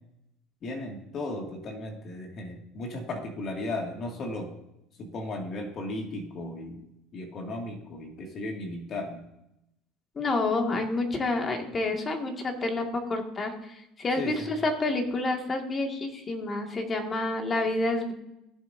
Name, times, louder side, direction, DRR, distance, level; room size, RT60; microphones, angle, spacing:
voice 1, 0.6-4.5 5.0-6.8 7.1-9.2 14.2-14.5, left 2 dB, 45° left, 2 dB, 2.1 m, -35 dB
voice 2, 10.2-18.1, left 2 dB, 30° left, 3 dB, 2.0 m, -29 dB
17.0 x 7.3 x 2.7 m, 0.84 s
supercardioid pair, 95°, 0 cm